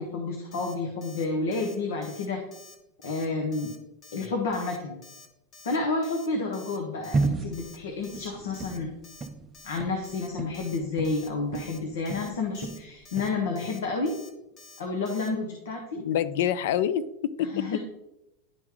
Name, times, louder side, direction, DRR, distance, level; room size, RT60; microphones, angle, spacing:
voice 1, 0.0-2.4 3.0-3.7 4.1-5.0 5.6-8.9 9.6-14.1 14.8-16.0 17.4-17.8, left 3 dB, 85° left, 2 dB, 1.2 m, -30 dB
Alarm, 0.5-0.7 1.0-1.2 1.5-1.7 2.0-2.3 2.5-2.7 3.0-3.2 3.5-3.8 4.0-4.3 4.5-4.8 5.0-5.3 5.5-5.8 6.0-6.3 6.5-6.8 7.0-7.3 7.5-7.8 8.0-8.3 8.5-8.8 9.0-9.3 9.5-9.8 10.0-10.3 10.5-10.8 11.0-11.3 11.5-11.8 12.0-12.3 12.5-12.8 13.0-13.3 13.5-13.8 14.1-14.3 14.6-14.8 15.0-15.3, left 3 dB, 25° left, 0.9 m, -50 dB
sound 1, 7.1-11.8 12.1-13.4, right 3 dB, 15° right, 0.4 m, -32 dB
voice 2, 15.9-17.8, left 10 dB, 60° left, 16 dB, 0.4 m, -27 dB
11.0 x 3.8 x 3.0 m, 0.90 s
supercardioid pair, 165°, 0 cm